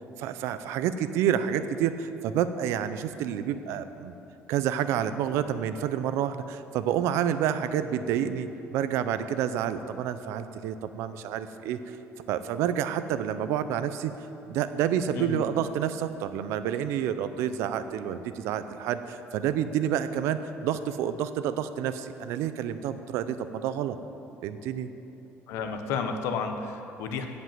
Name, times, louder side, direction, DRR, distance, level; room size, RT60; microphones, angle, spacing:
voice 1, 0.2-4.2 4.5-12.0 12.3-14.1 14.5-24.0 24.4-24.9, right 9 dB, 70° right, 11 dB, 0.6 m, -29 dB
voice 2, 15.1-15.4 25.5-27.3, left 5 dB, 65° left, 6 dB, 1.0 m, -32 dB
16.0 x 5.4 x 7.6 m, 2.9 s
cardioid pair, 180°, 5 cm